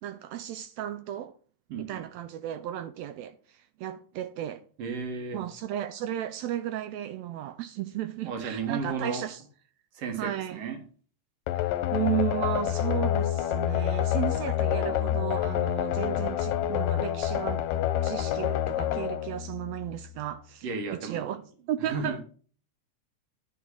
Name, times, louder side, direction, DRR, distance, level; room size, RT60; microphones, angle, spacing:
voice 1, 0.0-1.3 1.8-4.6 5.3-9.4 10.2-10.6 11.5-17.6 18.0-21.4 21.7-22.2, right 12 dB, 80° right, 1.6 m, -34 dB
voice 2, 1.7-2.0 4.8-5.4 8.2-9.3 9.9-10.8 20.6-21.2 21.8-22.2, right 4 dB, 55° right, 2.5 m, -34 dB
sound 1, 11.5-20.2, left 12 dB, 75° left, 1.9 m, -28 dB
10.0 x 4.6 x 5.9 m
omnidirectional pair, 3.5 m